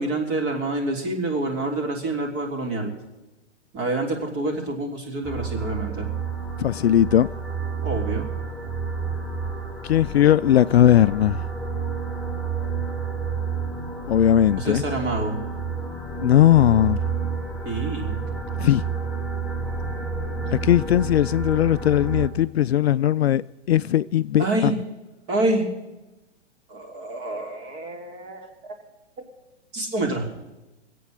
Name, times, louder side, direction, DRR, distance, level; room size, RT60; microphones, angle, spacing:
voice 1, 0.0-2.9 3.7-6.1 7.8-8.3 14.6-15.4 17.6-18.2 24.4-24.7 25.3-25.6 26.7-28.7 29.7-30.3, right 2 dB, 30° right, 3.3 m, -27 dB
sound 1, 5.2-22.3, right 5 dB, ahead, 2.0 m, -30 dB
voice 2, 6.6-7.3 9.9-11.5 14.1-14.8 16.2-17.0 18.6-18.8 20.6-23.4 23.7-24.7, left 11 dB, 60° left, 0.5 m, -18 dB
22.5 x 8.5 x 6.5 m
figure-of-eight pair, 125°, 35 cm